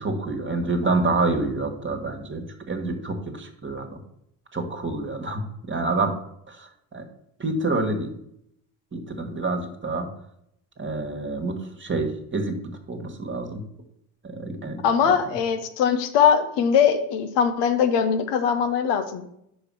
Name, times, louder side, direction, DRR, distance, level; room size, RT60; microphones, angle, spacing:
voice 1, 0.0-4.0 4.5-6.1 6.5-7.0 7.4-8.1 8.9-10.1 10.8-13.6 14.2-15.1, right 3 dB, 30° right, 5 dB, 1.6 m, -28 dB
voice 2, 14.8-19.2, left 7 dB, 85° left, 8 dB, 0.9 m, -21 dB
5.1 x 5.0 x 6.1 m, 0.75 s
supercardioid pair, 70°, 42 cm